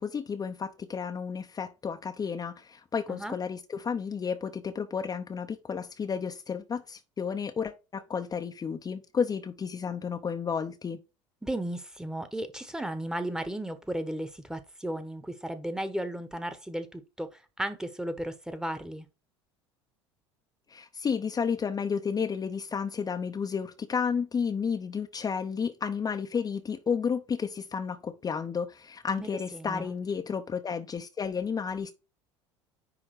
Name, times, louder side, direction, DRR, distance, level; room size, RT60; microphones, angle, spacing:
voice 1, 0.0-11.0 20.7-31.9, left 6 dB, 25° left, 0.8 m, -32 dB
voice 2, 11.4-19.1 29.2-29.9, right 1 dB, 5° right, 1.3 m, -35 dB
9.9 x 3.5 x 4.8 m
figure-of-eight pair, 70°, 15 cm